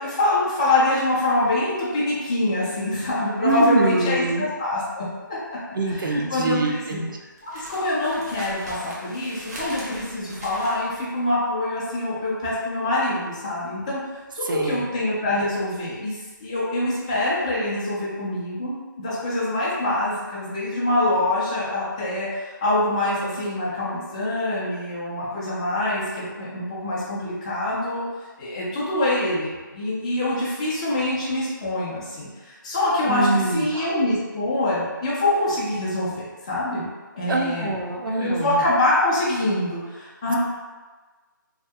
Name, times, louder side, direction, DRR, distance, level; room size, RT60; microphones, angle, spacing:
voice 1, 0.0-5.4 5.9-7.0 7.4-28.0 28.4-36.9 37.1-37.8 38.2-40.4, left 1 dB, 20° left, -8 dB, 0.4 m, -25 dB
sound 1, 1.4-17.6 17.8-18.2, right 1 dB, 50° right, 0.8 m, -43 dB
voice 2, 3.4-4.5 5.8-7.2 14.4-14.9 33.1-33.9 37.3-38.6 40.3-40.4, right 2 dB, 75° right, 2 dB, 0.5 m, -24 dB
2.7 x 2.5 x 2.2 m, 1.3 s
hypercardioid pair, 175°, 11 cm